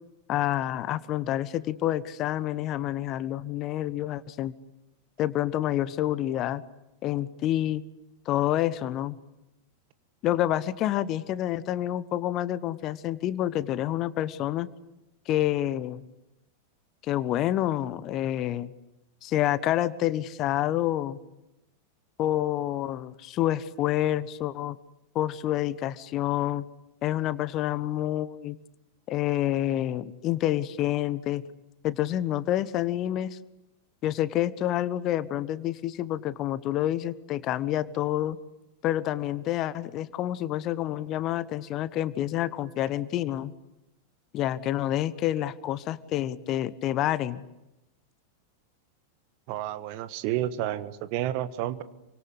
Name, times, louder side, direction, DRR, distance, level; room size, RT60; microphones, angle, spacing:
voice 1, 0.3-4.5 5.2-6.6 7.0-7.8 8.2-9.2 10.2-14.7 15.3-16.0 17.0-18.7 19.2-21.2 22.2-24.8 25.1-26.7 27.0-28.6 29.1-31.4 31.8-33.4 34.0-38.4 38.8-43.5 44.3-47.4, left 13 dB, 35° left, 17 dB, 1.1 m, -28 dB
voice 2, 49.5-51.8, right 13 dB, 45° right, 13 dB, 1.4 m, -30 dB
28.0 x 25.0 x 8.2 m, 0.93 s
figure-of-eight pair, 90°, 0 cm